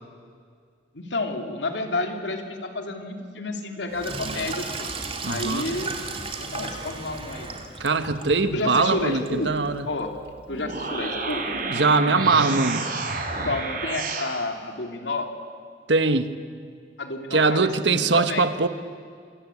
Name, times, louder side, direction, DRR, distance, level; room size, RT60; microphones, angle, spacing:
voice 1, 0.9-4.9 5.3-7.6 8.5-9.5 9.9-10.1 10.5-11.4 13.4-15.3 17.0-18.5, left 2 dB, 75° left, 4 dB, 3.2 m, -30 dB
Sink (filling or washing), 3.9-11.7, right 3 dB, 30° right, 2.6 m, -36 dB
voice 2, 5.2-5.6 7.8-9.9 11.7-12.8 15.9-16.3 17.3-18.7, right 3 dB, 75° right, 10 dB, 1.4 m, -21 dB
sound 1, 10.5-14.3, right 3 dB, 55° right, 4.5 m, -29 dB
27.5 x 23.0 x 8.6 m, 2.1 s
head